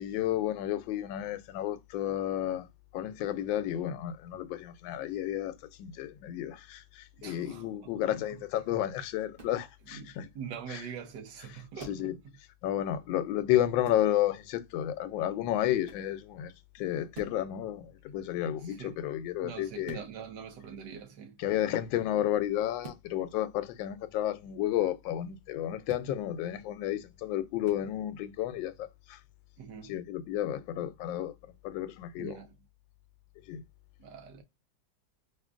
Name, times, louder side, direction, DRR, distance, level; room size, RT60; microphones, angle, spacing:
voice 1, 0.0-2.7 2.9-10.3 10.7-10.8 11.5-12.2 12.6-20.0 21.4-29.2 29.8-32.4 33.5-33.6, left 12 dB, 85° left, 1.3 m, -32 dB
voice 2, 7.2-8.1 9.9-12.2 18.4-19.0 19.4-21.4 29.6-29.9 32.2-32.5 34.0-34.4, right 7 dB, 70° right, 1.4 m, -44 dB
sound 1, 9.3-9.6 11.8-12.1 13.8-14.1 15.8-16.1 17.1-17.4 19.8-20.1 22.8-23.1 25.8-26.1 27.6-27.8, right 2 dB, 35° right, 1.0 m, -48 dB
5.0 x 2.7 x 2.4 m
omnidirectional pair, 2.0 m